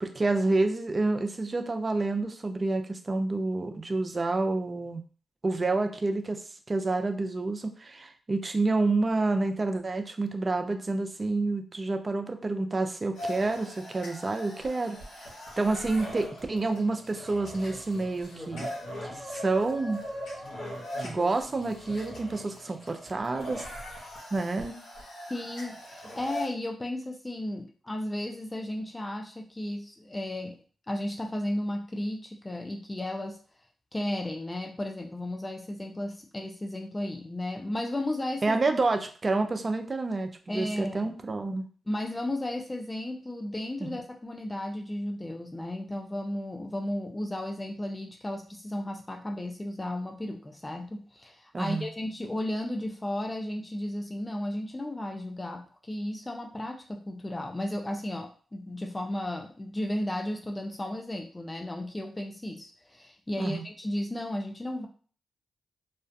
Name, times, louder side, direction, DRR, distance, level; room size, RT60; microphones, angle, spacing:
voice 1, 0.0-5.0 5.4-18.7 19.0-20.0 21.0-23.7 24.3-24.8 38.4-41.6 43.8-43.9 51.5-51.9 63.4-63.6, right 3 dB, 40° right, 7 dB, 0.4 m, -29 dB
sound 1, 13.1-26.5, equal, 80° left, 0.9 m, -40 dB
voice 2, 25.3-30.6 30.9-33.4 33.9-38.6 40.5-41.1 41.9-64.9, left 1 dB, 25° left, 3 dB, 0.4 m, -34 dB
2.3 x 2.2 x 2.5 m, 0.41 s
supercardioid pair, 45°, 0 cm